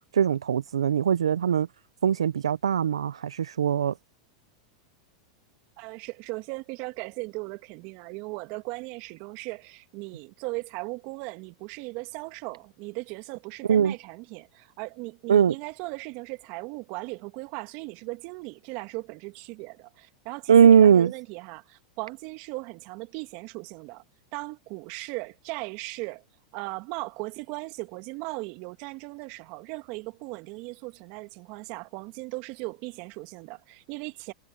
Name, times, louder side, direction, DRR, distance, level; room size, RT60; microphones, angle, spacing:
voice 1, 0.1-1.7 2.0-3.9 13.7-13.9 15.3-15.5 20.5-21.1, right 8 dB, 85° right, 0.7 m, -20 dB
voice 2, 5.8-24.0 24.3-26.2 26.5-34.3, right 26 dB, 55° right, 1.8 m, -38 dB
hypercardioid pair, 100°, 3 cm